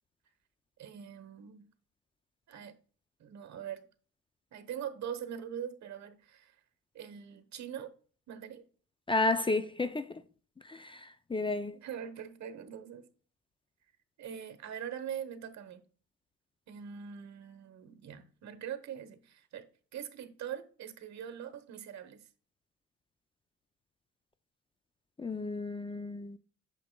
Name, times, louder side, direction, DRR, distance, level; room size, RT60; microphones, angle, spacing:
voice 1, 0.8-1.7 2.5-2.8 3.2-3.9 4.5-6.5 6.9-7.9 8.3-8.7 11.7-13.1 14.2-15.8 16.7-19.7 19.9-22.2, right 8 dB, 65° right, 1.2 m, -42 dB
voice 2, 9.1-10.2 10.7-11.8 25.2-26.4, left 3 dB, 15° left, 0.5 m, -32 dB
8.5 x 6.8 x 2.3 m
cardioid pair, 90°, 30 cm